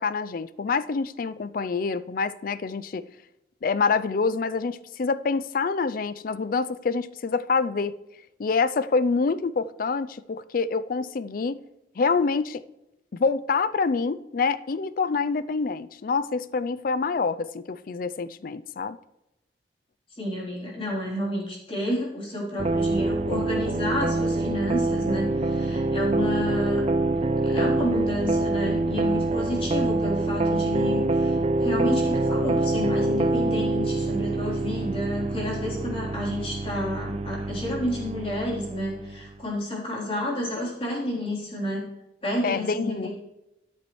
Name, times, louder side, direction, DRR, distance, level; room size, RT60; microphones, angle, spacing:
voice 1, 0.0-3.1 3.6-8.0 8.4-11.6 12.0-12.6 13.1-19.0 42.4-43.1, left 4 dB, 50° left, 0.4 m, -26 dB
voice 2, 20.2-26.8 27.4-41.8 42.2-43.1, left 1 dB, 30° left, 3.5 m, -30 dB
sound 1, 22.6-39.3, right 2 dB, 35° right, 0.4 m, -25 dB
12.5 x 10.5 x 3.1 m
head